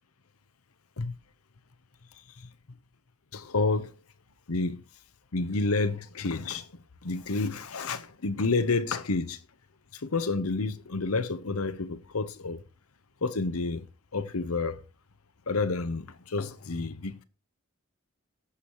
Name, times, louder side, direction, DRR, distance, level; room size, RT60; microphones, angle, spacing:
voice 1, 3.3-3.9 4.5-4.8 5.3-6.7 7.0-9.4 9.9-12.6 13.2-13.8 14.1-14.8 15.5-17.2, left 3 dB, 90° left, 0.9 m, -29 dB
18.0 x 7.2 x 3.0 m
head